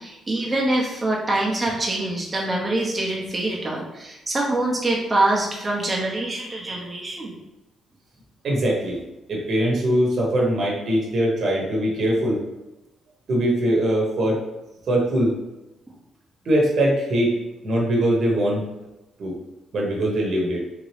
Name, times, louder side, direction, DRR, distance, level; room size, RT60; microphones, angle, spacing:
voice 1, 0.0-7.3, right 2 dB, 25° right, -3 dB, 0.9 m, -24 dB
voice 2, 8.4-9.0 9.3-12.4 13.3-14.4 14.9-15.4 16.4-17.3 17.6-18.6 19.2-19.3 19.7-20.6, right 1 dB, 60° right, -2 dB, 1.1 m, -21 dB
3.7 x 2.9 x 3.3 m, 0.98 s
cardioid pair, 90°, 0 cm